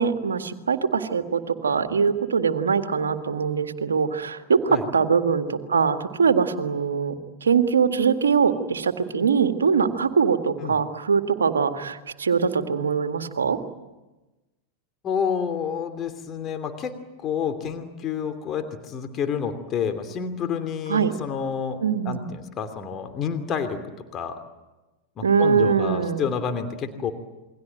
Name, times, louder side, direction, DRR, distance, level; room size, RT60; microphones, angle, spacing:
voice 1, 0.0-7.2 7.4-13.6 20.9-21.1 21.8-22.3 25.2-26.3, right 6 dB, 70° right, 8 dB, 1.9 m, -22 dB
voice 2, 15.0-23.8 24.1-24.4 25.2-27.1, left 7 dB, 30° left, 7 dB, 2.8 m, -29 dB
28.5 x 22.5 x 9.2 m, 1.1 s
figure-of-eight pair, 90°, 0 cm